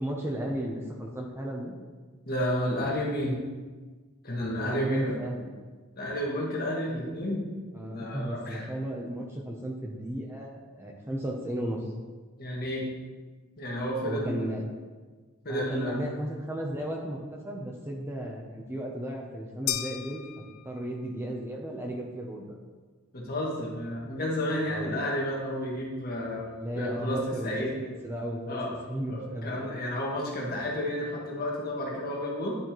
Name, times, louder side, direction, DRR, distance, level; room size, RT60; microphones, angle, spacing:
voice 1, 0.0-1.7 4.4-5.5 7.7-11.8 14.1-14.6 15.5-22.6 24.6-24.9 26.5-27.7 28.0-28.6 28.9-29.7, right 1 dB, 10° right, 0 dB, 0.6 m, -34 dB
voice 2, 2.3-3.4 4.2-5.1 6.0-7.4 7.8-8.7 12.4-12.9 13.6-14.5 15.4-16.0 23.1-26.5 26.7-27.7 28.5-28.7 29.1-32.6, equal, 45° left, -3 dB, 1.5 m, -31 dB
sound 1, 19.7-21.1, left 12 dB, 80° left, 0.4 m, -35 dB
10.5 x 4.3 x 3.0 m, 1.4 s
head